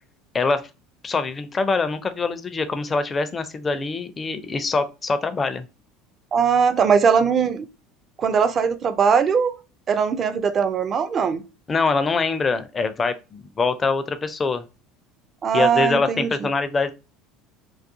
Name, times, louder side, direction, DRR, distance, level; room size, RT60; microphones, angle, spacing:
voice 1, 0.3-0.7 1.0-5.7 11.7-14.6 15.5-16.9, left 4 dB, 25° left, 0.4 m, -24 dB
voice 2, 6.3-7.7 8.2-9.5 9.9-11.4 15.4-16.3, right 6 dB, 40° right, 0.4 m, -20 dB
2.4 x 2.3 x 2.5 m
hypercardioid pair, 70°, 0 cm